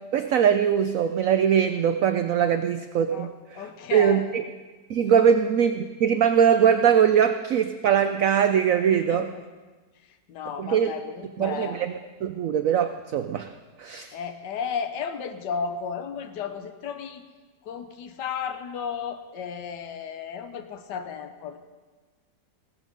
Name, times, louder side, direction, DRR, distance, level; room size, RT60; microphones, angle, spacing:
voice 1, 0.1-4.4 4.9-9.3 10.6-10.9 11.4-11.9 12.2-13.5 13.8-14.1, right 8 dB, 65° right, 8 dB, 0.8 m, -22 dB
voice 2, 3.5-4.3 5.2-5.3 8.9-9.4 10.0-11.8 14.1-17.2 17.6-21.6, left 6 dB, 70° left, 8 dB, 1.6 m, -34 dB
17.0 x 13.5 x 5.3 m, 1.3 s
omnidirectional pair, 1.9 m